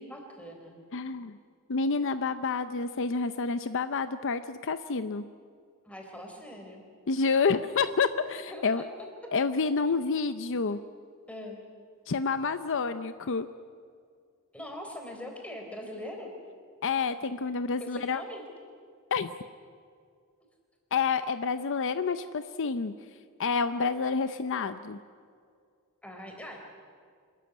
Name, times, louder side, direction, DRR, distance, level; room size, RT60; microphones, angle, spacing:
voice 1, 0.0-0.8 5.8-6.8 8.5-8.9 11.3-11.6 14.5-16.3 17.8-18.4 26.0-26.6, left 1 dB, 5° left, 2 dB, 4.0 m, -42 dB
voice 2, 0.9-1.4 1.7-5.2 7.1-8.8 9.3-10.8 12.1-13.5 16.8-18.2 19.1-19.3 20.9-22.9 23.4-25.0, left 4 dB, 60° left, 11 dB, 0.6 m, -28 dB
25.5 x 14.0 x 9.9 m, 2.2 s
head